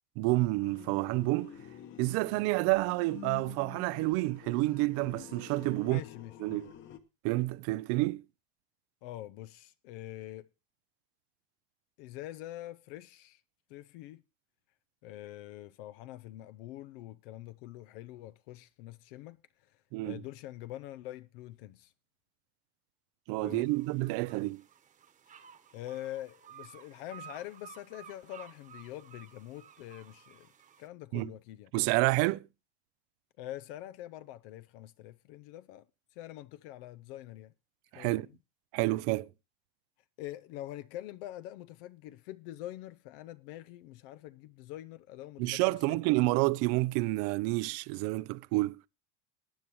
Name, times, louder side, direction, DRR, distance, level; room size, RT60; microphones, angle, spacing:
voice 1, 0.2-1.5 2.0-6.0 6.4-6.7 7.2-8.2 19.9-20.2 23.3-24.6 31.1-31.3 31.7-32.5 37.9-38.3 38.7-39.3 45.4-48.8, right 21 dB, 50° right, 0.5 m, -29 dB
sound 1, 0.6-7.0, left 10 dB, 40° left, 1.3 m, -49 dB
voice 2, 5.8-6.6 9.0-10.5 12.0-13.4 13.7-14.2 15.0-21.9 23.4-23.7 25.3-25.4 25.7-30.5 30.8-31.7 33.4-35.9 36.1-37.5 37.9-38.4 40.2-46.0, left 14 dB, 65° left, 0.7 m, -45 dB
sound 2, 23.5-30.9, right 9 dB, 25° right, 1.2 m, -54 dB
19.0 x 8.6 x 3.0 m
supercardioid pair, 120°, 31 cm